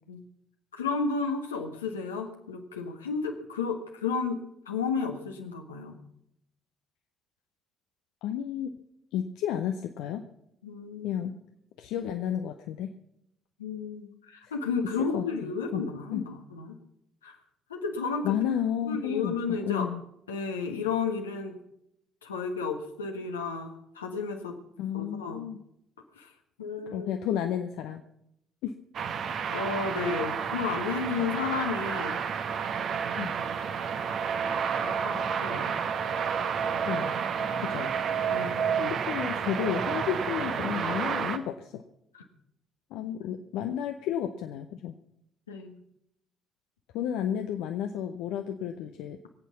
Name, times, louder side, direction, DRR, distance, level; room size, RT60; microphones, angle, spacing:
voice 1, 0.7-4.4 4.7-6.0 10.6-11.2 13.6-16.8 17.2-17.3 17.7-18.5 18.8-19.9 20.3-21.6 22.2-24.6 24.9-25.4 26.2-26.3 26.6-27.1 29.5-32.2 34.8-35.8 38.3-39.0 42.1-42.2 45.5-45.8, left 5 dB, 85° left, 3 dB, 1.4 m, -33 dB
voice 2, 8.2-8.7 9.1-10.2 11.0-11.3 11.8-12.9 15.1-15.8 16.1-16.2 18.2-20.0 24.8-25.6 26.9-28.0 28.6-28.7 33.2-33.3 36.8-37.2 37.6-37.9 38.8-41.8 42.9-44.9 46.9-49.2, left 9 dB, 65° left, 6 dB, 0.7 m, -32 dB
sound 1, 28.9-41.4, right 7 dB, 55° right, 1.1 m, -30 dB
22.5 x 8.3 x 5.8 m, 0.78 s
figure-of-eight pair, 50°, 0 cm